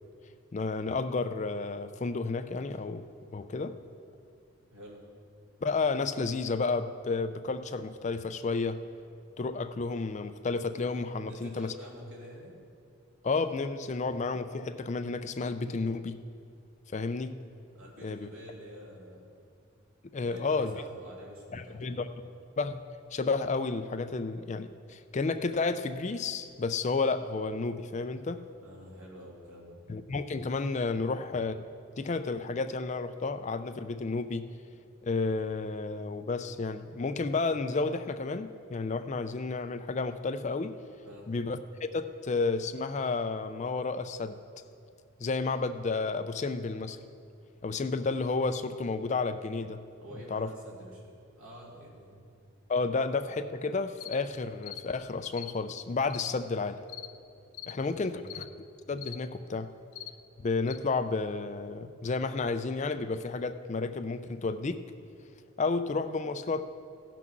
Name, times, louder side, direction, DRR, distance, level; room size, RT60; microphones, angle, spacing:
voice 1, 0.5-3.1 3.3-3.7 5.6-8.8 9.4-11.7 13.2-16.2 16.9-17.4 18.0-18.3 20.1-20.7 21.5-22.1 22.6-22.8 23.1-28.4 29.9-31.7 32.0-34.5 35.0-40.8 41.3-41.6 41.9-44.4 45.2-47.0 47.6-49.8 50.3-50.5 52.7-56.8 57.7-58.5 58.9-59.7 60.4-64.8 65.6-66.6, left 3 dB, 35° left, 10 dB, 0.4 m, -31 dB
voice 2, 4.7-5.0 11.1-12.6 17.7-19.3 20.2-22.1 28.6-29.8 41.0-41.3 50.0-52.3 57.6-58.3, equal, 85° right, -4 dB, 2.9 m, -48 dB
sound 1, 54.0-54.2 54.6-54.9 55.3-55.5 56.1-56.3 56.9-57.1 57.5-57.8 58.3-58.5 59.0-59.2 59.9-60.1 60.7-60.8, left 13 dB, 85° left, 0.5 m, -42 dB
16.0 x 6.0 x 6.0 m, 2.4 s
head